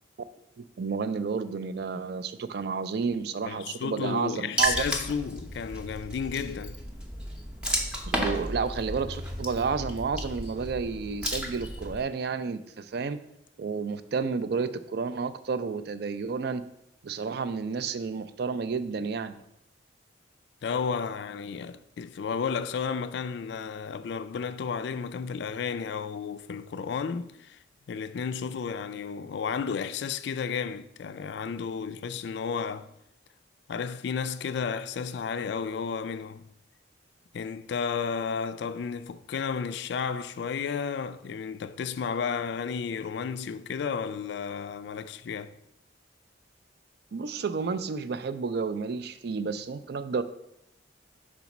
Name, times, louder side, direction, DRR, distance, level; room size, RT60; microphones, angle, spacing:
voice 1, 0.6-4.8 8.1-13.2 13.6-16.6 17.0-19.4 47.1-50.2, right 5 dB, 55° right, 0.4 m, -31 dB
voice 2, 3.5-6.8 20.6-27.6 27.9-32.9 33.7-36.5 37.3-45.5, left 6 dB, 60° left, 0.3 m, -32 dB
Water / Splash splatter, 4.6-12.0, right 1 dB, 5° right, 0.6 m, -33 dB
5.0 x 4.1 x 5.9 m
head